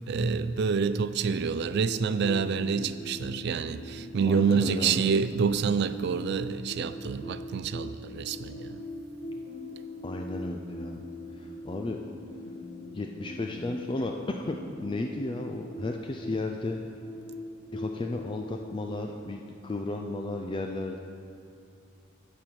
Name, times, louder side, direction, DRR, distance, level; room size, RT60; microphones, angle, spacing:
voice 1, 0.1-8.8, right 5 dB, 55° right, 13 dB, 0.3 m, -27 dB
sound 1, 1.6-18.5, left 1 dB, 75° left, 1.4 m, -42 dB
voice 2, 4.2-5.0 10.0-11.0 11.4-12.0 12.9-16.8 17.7-21.0, left 2 dB, 25° left, 3 dB, 0.4 m, -34 dB
11.5 x 4.6 x 7.3 m, 2.5 s
head